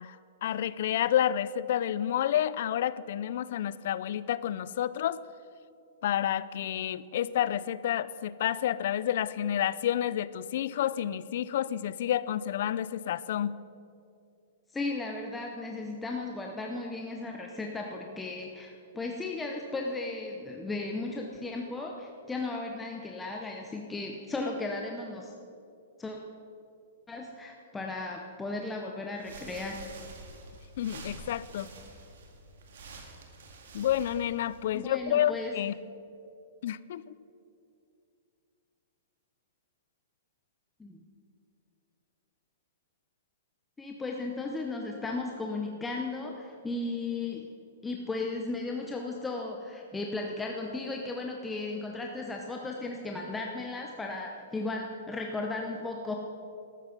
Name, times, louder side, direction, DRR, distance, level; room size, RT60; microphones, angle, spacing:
voice 1, 0.0-5.2 6.0-13.6 30.8-31.7 33.7-35.7 36.6-37.1, left 11 dB, 60° left, 18 dB, 0.4 m, -29 dB
voice 2, 14.7-25.3 26.0-26.2 27.1-29.8 34.7-35.5 40.8-41.0 43.8-47.4 47.8-56.2, left 3 dB, 10° left, 1 dB, 0.8 m, -35 dB
sound 1, 29.1-34.8, right 3 dB, 70° right, 2.0 m, -48 dB
13.0 x 9.0 x 5.9 m, 2.5 s
hypercardioid pair, 150°, 0 cm